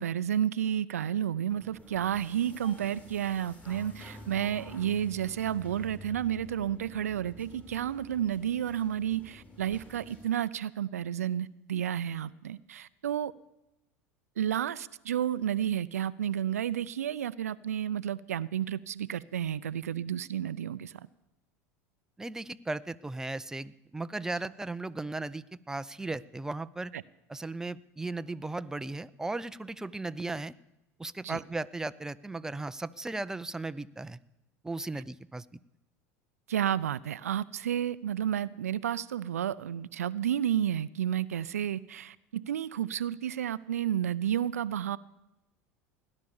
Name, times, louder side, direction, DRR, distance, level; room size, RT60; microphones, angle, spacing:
voice 1, 0.0-13.3 14.4-20.9 26.9-27.0 31.2-31.4 36.5-45.0, right 10 dB, 80° right, 17 dB, 0.5 m, -31 dB
sound 1, 1.5-10.3, left 1 dB, 15° left, 4.8 m, -50 dB
voice 2, 22.2-26.9 27.3-30.5 31.0-34.2 34.6-35.5, right 2 dB, 5° right, 13 dB, 0.5 m, -36 dB
17.0 x 11.0 x 7.1 m, 0.94 s
hypercardioid pair, 80°, 8 cm